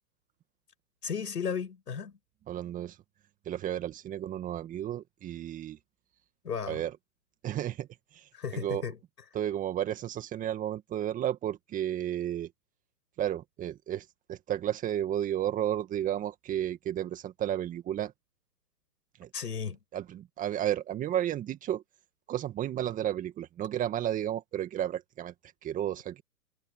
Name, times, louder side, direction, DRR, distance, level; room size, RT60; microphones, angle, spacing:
voice 1, 1.0-2.2 6.4-6.8 8.3-9.0 19.3-19.8, left 6 dB, 85° left, 5.9 m, -34 dB
voice 2, 2.5-3.0 3.5-5.8 6.7-6.9 7.4-7.9 8.1-8.8 9.3-12.5 13.2-18.1 19.2-19.3 19.9-21.8 22.3-25.3 25.6-26.2, right 11 dB, 15° right, 2.1 m, -32 dB
hypercardioid pair, 140°, 47 cm